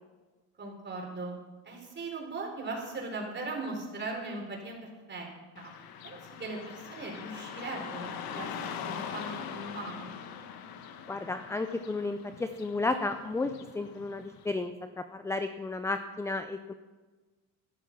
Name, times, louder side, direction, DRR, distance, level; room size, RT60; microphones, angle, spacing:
voice 1, 0.6-1.4 1.7-5.3 5.6-5.7 6.0-8.5 8.9-10.1, right 3 dB, 30° right, 1 dB, 4.0 m, -39 dB
Car passing by / Traffic noise roadway noise, 5.6-14.6, left 7 dB, 70° left, 1.5 m, -42 dB
voice 2, 11.1-16.7, left 3 dB, 10° left, 9 dB, 0.4 m, -33 dB
12.5 x 12.0 x 5.9 m, 1.3 s
cardioid pair, 115°, 38 cm